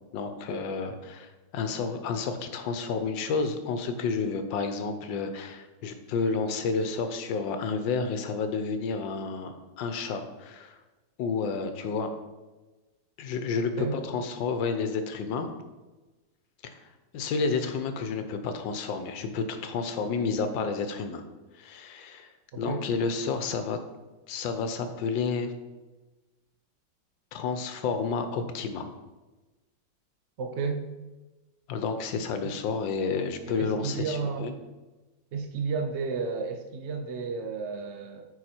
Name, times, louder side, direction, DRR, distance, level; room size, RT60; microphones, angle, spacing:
voice 1, 0.1-10.8 11.2-12.1 13.2-15.5 16.6-16.7 17.1-21.2 21.6-23.8 24.3-25.5 27.3-28.9 31.7-34.5, left 4 dB, 80° left, 8 dB, 1.5 m, -30 dB
voice 2, 30.4-30.8 32.4-32.5 33.5-34.5 35.3-38.2, right 5 dB, 80° right, 4 dB, 0.6 m, -32 dB
9.5 x 4.4 x 4.4 m, 1.2 s
omnidirectional pair, 2.0 m